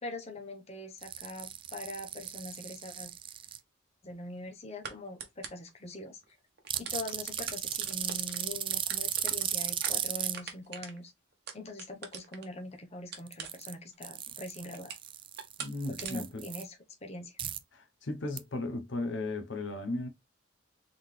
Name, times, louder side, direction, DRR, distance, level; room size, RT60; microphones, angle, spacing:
voice 1, 0.0-3.1 4.0-6.2 6.8-11.1 11.5-15.0 15.9-17.4, left 2 dB, 35° left, 0.9 m, -43 dB
sound 1, 1.0-3.6 6.7-10.3 13.2-13.7 14.0-16.6 17.4-17.6 18.4-18.5, right 10 dB, 25° right, 0.3 m, -36 dB
sound 2, 3.0-3.2 4.8-4.9 5.2-5.7 6.2-6.3 6.6-12.6 13.1-13.9 14.3-15.1 15.4-15.7 16.0-16.1, right 6 dB, 55° right, 1.0 m, -42 dB
voice 2, 15.6-16.4 17.7-20.1, left 2 dB, 65° left, 0.8 m, -36 dB
3.9 x 3.8 x 3.1 m
head